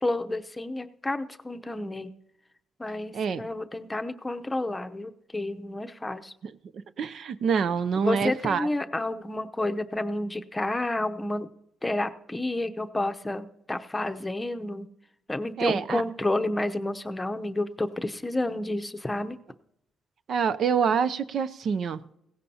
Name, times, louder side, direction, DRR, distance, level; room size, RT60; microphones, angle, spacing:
voice 1, 0.0-2.1 2.8-6.3 8.0-11.5 11.8-14.9 15.3-19.4, left 2 dB, 15° left, 8 dB, 0.8 m, -30 dB
voice 2, 3.1-3.4 7.0-8.7 15.6-16.0 20.3-22.0, right 6 dB, 60° right, 14 dB, 0.5 m, -26 dB
17.0 x 15.5 x 2.9 m, 0.80 s
cardioid pair, 90°, 0 cm